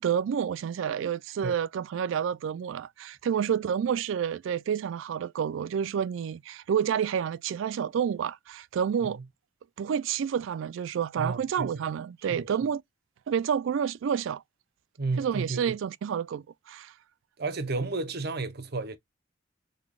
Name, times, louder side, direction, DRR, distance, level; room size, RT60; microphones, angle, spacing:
voice 1, 0.0-9.2 9.8-12.8 13.3-14.4 15.2-16.9, right 8 dB, 85° right, 0.3 m, -29 dB
voice 2, 11.2-11.7 12.3-12.5 15.0-15.8 17.4-19.0, right 3 dB, 55° right, 0.8 m, -32 dB
3.9 x 3.3 x 2.3 m
head